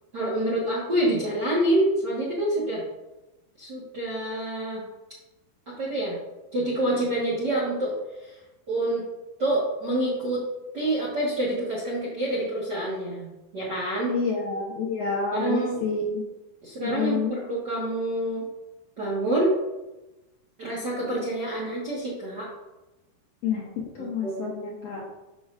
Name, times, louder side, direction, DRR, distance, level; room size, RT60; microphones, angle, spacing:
voice 1, 0.1-2.8 3.6-4.8 5.7-6.2 6.5-7.9 8.2-8.3 8.7-9.0 9.4-10.4 10.7-14.1 15.3-15.8 16.6-18.5 19.0-19.6 20.6-22.5 24.0-24.5, right 1 dB, 50° right, -6 dB, 1.2 m, -27 dB
voice 2, 14.1-16.2 16.8-17.3 23.4-25.0, left 4 dB, 65° left, -4 dB, 1.7 m, -28 dB
11.5 x 6.1 x 2.5 m, 1.0 s
omnidirectional pair, 4.3 m